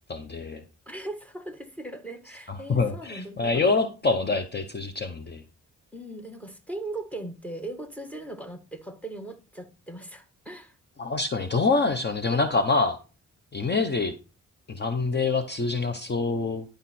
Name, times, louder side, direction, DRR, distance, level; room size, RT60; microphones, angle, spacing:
voice 1, 0.1-0.6 2.7-5.4 11.0-13.0 13.5-14.1 14.7-16.6, left 3 dB, 30° left, 0.9 m, -25 dB
voice 2, 0.9-3.6 5.9-10.7, right 2 dB, 5° left, 1.4 m, -39 dB
11.0 x 5.1 x 4.3 m
cardioid pair, 105°, 32 cm